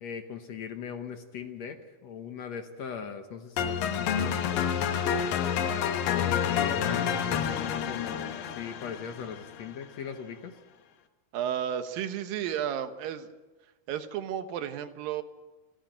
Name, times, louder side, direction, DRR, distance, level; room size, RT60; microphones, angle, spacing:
voice 1, 0.0-4.9 5.6-10.6, left 7 dB, 65° left, 7 dB, 2.0 m, -40 dB
sound 1, 3.6-9.7, left 8 dB, 80° left, 2.9 m, -29 dB
voice 2, 11.3-13.3 13.9-15.2, right 9 dB, 85° right, 9 dB, 2.8 m, -32 dB
28.5 x 10.0 x 9.0 m, 1.2 s
omnidirectional pair, 4.0 m